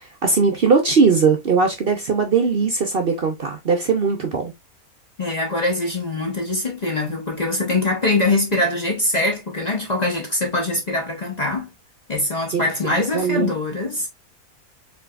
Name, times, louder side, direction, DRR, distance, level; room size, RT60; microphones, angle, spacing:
voice 1, 0.0-4.5 12.5-13.5, right 5 dB, 50° right, 0.8 m, -20 dB
voice 2, 5.2-11.7 12.1-14.1, left 2 dB, 35° left, 0.8 m, -23 dB
4.7 x 3.3 x 2.4 m
omnidirectional pair, 1.6 m